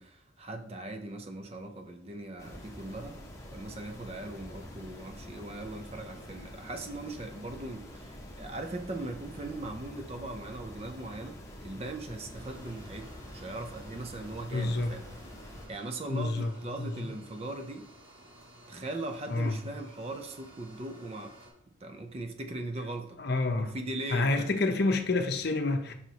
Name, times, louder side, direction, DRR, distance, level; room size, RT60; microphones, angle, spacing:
voice 1, 0.0-3.2 3.5-15.1 15.7-17.9 18.7-21.3 21.8-23.2 23.6-24.5, right 2 dB, 30° right, 6 dB, 0.5 m, -39 dB
sound 1, 2.4-15.7, left 1 dB, 15° left, 1.0 m, -46 dB
sound 2, 12.3-21.5, right 1 dB, 45° right, 2.0 m, -54 dB
voice 2, 14.5-14.9 16.1-17.2 19.3-19.6 23.2-23.7 24.1-25.9, left 2 dB, 55° left, 6 dB, 0.6 m, -29 dB
5.6 x 4.6 x 4.0 m, 0.71 s
head